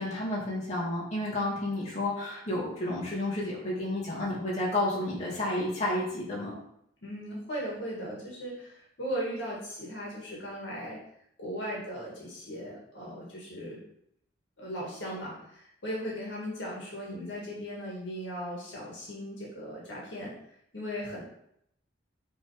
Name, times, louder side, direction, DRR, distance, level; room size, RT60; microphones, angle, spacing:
voice 1, 0.0-6.6, left 1 dB, 35° left, -7 dB, 2.3 m, -31 dB
voice 2, 7.0-11.0 11.4-13.8 14.6-20.3 20.7-21.2, equal, 75° left, -4 dB, 1.9 m, -37 dB
6.2 x 3.7 x 4.9 m, 0.73 s
head